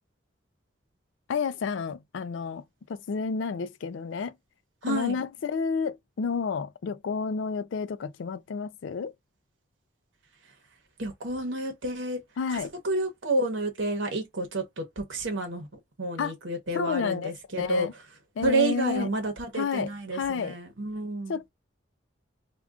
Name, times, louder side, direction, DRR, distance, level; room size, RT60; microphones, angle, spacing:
voice 1, 1.3-2.6 2.9-4.4 4.8-9.1 12.4-12.7 16.2-16.3 16.7-17.9 18.4-19.1 19.5-20.6 21.3-21.5, left 5 dB, 85° left, 0.4 m, -30 dB
voice 2, 4.8-5.1 11.0-12.2 12.5-15.7 16.0-17.9 18.4-21.4, right 2 dB, 85° right, 0.9 m, -30 dB
3.6 x 2.2 x 2.3 m
head